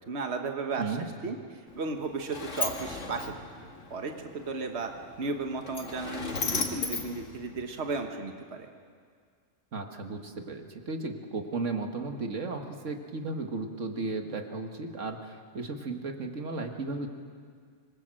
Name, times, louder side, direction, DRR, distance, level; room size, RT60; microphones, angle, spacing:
voice 1, 0.1-1.0 1.2-3.3 3.9-4.9 5.2-8.7, right 4 dB, 65° right, 4 dB, 1.7 m, -34 dB
Sliding door, 1.7-8.1, left 3 dB, 80° left, 2.2 m, -37 dB
voice 2, 9.7-17.1, right 3 dB, 90° right, 4 dB, 2.0 m, -35 dB
26.0 x 22.0 x 7.6 m, 2.1 s
omnidirectional pair, 1.2 m